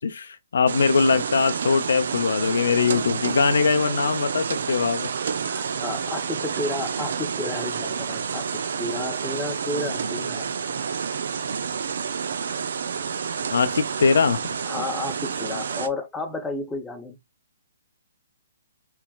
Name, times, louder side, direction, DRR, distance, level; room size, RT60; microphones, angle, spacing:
voice 1, 0.0-5.1 13.5-14.4, left 5 dB, 70° left, 0.7 m, -21 dB
sound 1, 0.7-15.9, right 6 dB, 65° right, 0.6 m, -29 dB
voice 2, 5.4-8.4 8.8-10.5 14.6-17.2, left 2 dB, 10° left, 0.8 m, -32 dB
4.6 x 3.3 x 2.3 m
hypercardioid pair, 135°, 0 cm